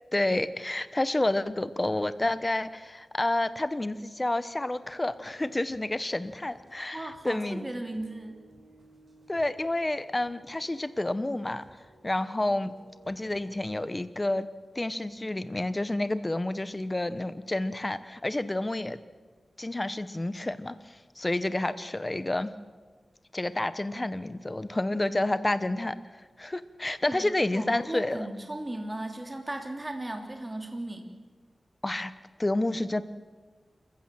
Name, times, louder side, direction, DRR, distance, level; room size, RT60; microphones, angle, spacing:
voice 1, 0.1-7.7 9.3-11.6 12.0-12.7 13.1-14.5 14.7-19.0 19.6-22.5 23.3-25.9 26.4-28.3 31.8-32.1 32.4-33.0, left 1 dB, 25° left, 13 dB, 1.1 m, -29 dB
sound 1, 4.8-13.9, right 1 dB, 70° right, 6.5 m, -58 dB
voice 2, 6.9-8.4 27.0-27.3 27.5-31.2, right 1 dB, 20° right, 4 dB, 3.2 m, -36 dB
27.0 x 15.0 x 7.6 m, 1.4 s
wide cardioid pair, 85°, 0 cm